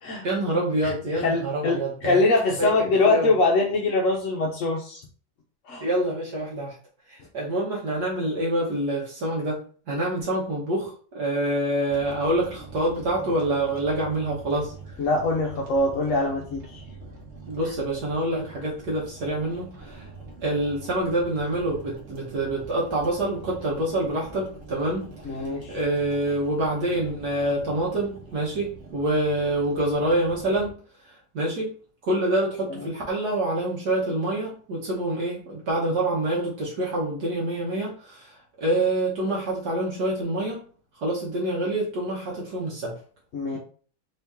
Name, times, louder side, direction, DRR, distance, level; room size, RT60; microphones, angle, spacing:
voice 1, 0.2-2.2 2.6-2.7 3.0-3.3 5.8-6.8 7.1-9.6 9.9-14.7 17.5-20.1 20.4-25.1 25.4-30.7 31.0-31.7 32.0-40.6 41.0-42.9 43.5-43.6, right 1 dB, 70° right, -4 dB, 1.5 m, -26 dB
voice 2, 1.2-5.0 5.6-5.9 15.0-16.8 25.2-25.8 43.3-43.6, left 2 dB, 60° left, -1 dB, 0.8 m, -23 dB
sound 1, 11.9-30.7, right 3 dB, 45° right, 1.3 m, -44 dB
3.6 x 2.8 x 3.5 m, 0.43 s
omnidirectional pair, 1.8 m